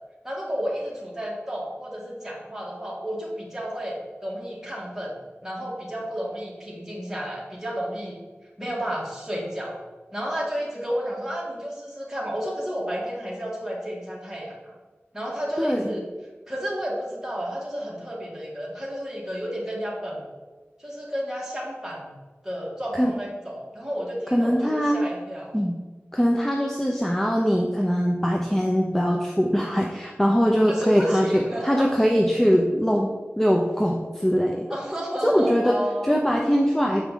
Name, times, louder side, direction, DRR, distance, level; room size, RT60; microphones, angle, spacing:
voice 1, 0.2-5.1 5.4-8.2 8.6-9.7 10.1-14.7 15.1-16.0 16.5-20.2 20.8-22.1 22.4-25.5 30.7-31.9 34.7-36.1, equal, 10° right, -4 dB, 2.0 m, -31 dB
voice 2, 15.6-15.9 23.0-23.1 24.3-25.0 25.5-25.8 26.1-34.7 35.2-35.7 36.0-37.1, equal, 10° left, 0 dB, 0.7 m, -22 dB
7.2 x 4.7 x 3.7 m, 1.3 s
wide cardioid pair, 50°, 4 cm